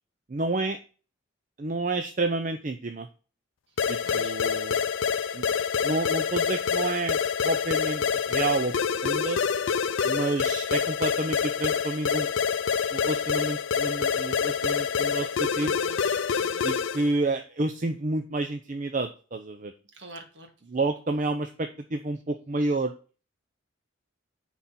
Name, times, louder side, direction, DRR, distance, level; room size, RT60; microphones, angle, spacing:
voice 1, 0.3-0.8 1.6-3.1 3.9-4.7 5.3-5.4 5.8-7.2 7.4-8.0 8.3-8.7 9.0-9.4 10.0-12.3 12.9-15.7 16.6-19.7 20.7-22.9, right 2 dB, 40° right, 7 dB, 0.5 m, -29 dB
sound 1, 3.8-17.1, left 6 dB, 70° left, 0.4 m, -27 dB
voice 2, 4.0-4.3 15.6-16.7 19.9-20.5, right 2 dB, 60° right, 4 dB, 1.8 m, -46 dB
9.8 x 4.1 x 4.2 m, 0.37 s
head